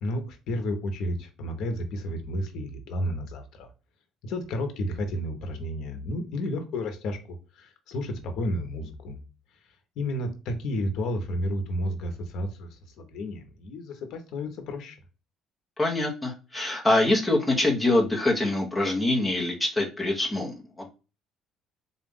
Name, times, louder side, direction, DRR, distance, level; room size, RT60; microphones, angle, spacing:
voice 1, 0.0-3.7 4.2-9.2 10.0-15.0, left 1 dB, 60° left, 6 dB, 0.9 m, -32 dB
voice 2, 15.8-20.9, left 2 dB, 5° left, -1 dB, 0.9 m, -24 dB
4.0 x 2.5 x 3.7 m, 0.32 s
cardioid pair, 165°, 0 cm